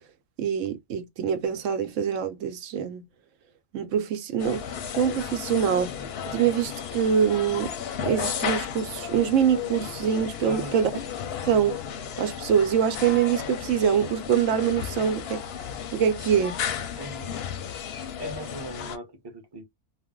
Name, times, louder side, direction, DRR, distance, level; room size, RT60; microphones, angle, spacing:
voice 1, 0.4-3.0 3.7-6.0 6.3-7.7 8.0-10.9 11.5-11.8 12.2-15.5 15.9-16.6, right 8 dB, 80° right, 0.9 m, -24 dB
sound 1, 4.4-19.0, left 8 dB, 65° left, 0.7 m, -34 dB
voice 2, 10.4-10.8 17.0-17.4 18.2-19.6, right 1 dB, 25° right, 0.7 m, -39 dB
2.4 x 2.0 x 3.6 m
omnidirectional pair, 1.3 m